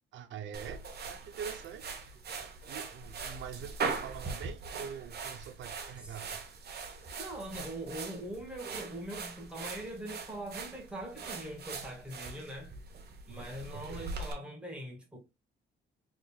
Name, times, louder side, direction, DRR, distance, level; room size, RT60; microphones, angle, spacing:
voice 1, 0.1-2.0 2.7-6.5 13.3-13.4 13.7-14.1, right 8 dB, 70° right, 0.7 m, -44 dB
sound 1, 0.5-14.3, right 4 dB, 55° right, 1.1 m, -41 dB
voice 2, 7.2-12.8 13.3-15.2, right 1 dB, 5° right, 1.8 m, -42 dB
3.9 x 3.7 x 2.3 m
cardioid pair, 90°, 20 cm